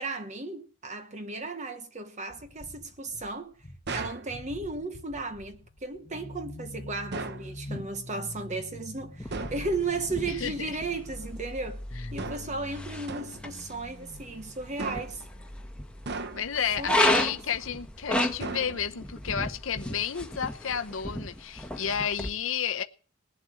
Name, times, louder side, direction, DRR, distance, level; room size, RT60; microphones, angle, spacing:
voice 1, 0.0-3.5 3.9-11.8 12.1-15.2 16.8-17.5, right 3 dB, 35° right, 1.2 m, -35 dB
sound 1, 2.3-3.3 3.6-15.7 16.9-17.0 17.2-19.8, left 1 dB, 35° left, 1.1 m, -45 dB
sound 2, 3.9-4.3 7.1-7.5 9.3-9.7 12.2-12.6 13.1-13.5 14.8-15.3 16.1-16.6 18.4-19.1, right 3 dB, 55° right, 1.0 m, -37 dB
sound 3, 9.2-22.3, left 1 dB, 5° left, 1.3 m, -33 dB
voice 2, 10.3-10.8 16.4-22.8, left 7 dB, 70° left, 0.8 m, -31 dB
19.5 x 7.8 x 7.7 m
head